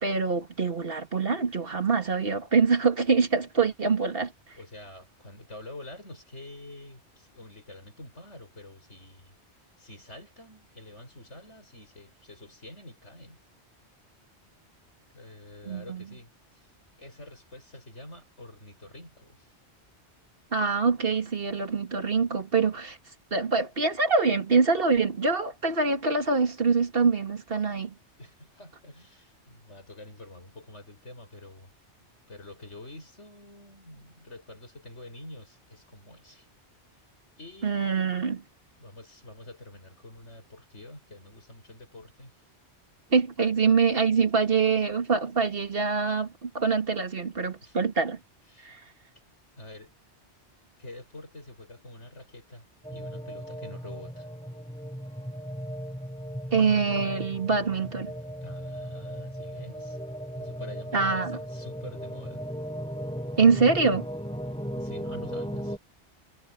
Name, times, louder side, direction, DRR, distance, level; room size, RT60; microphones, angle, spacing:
voice 1, 0.0-4.3 15.7-16.0 20.5-23.0 23.3-27.9 37.6-38.4 43.1-48.2 48.6-48.8 56.5-58.1 60.9-61.4 63.4-64.1, right 5 dB, 55° right, 2.2 m, -24 dB
voice 2, 4.5-9.3 9.8-13.4 15.1-16.7 17.0-19.5 28.2-31.7 32.3-36.5 37.4-37.8 38.8-42.4 47.6-47.8 48.5-48.7 49.6-49.9 50.8-52.7 52.9-54.3 58.4-60.0 60.3-62.4 64.8-65.8, left 2 dB, 90° left, 7.2 m, -47 dB
sound 1, 52.8-65.8, equal, 5° left, 5.1 m, -37 dB
omnidirectional pair, 1.2 m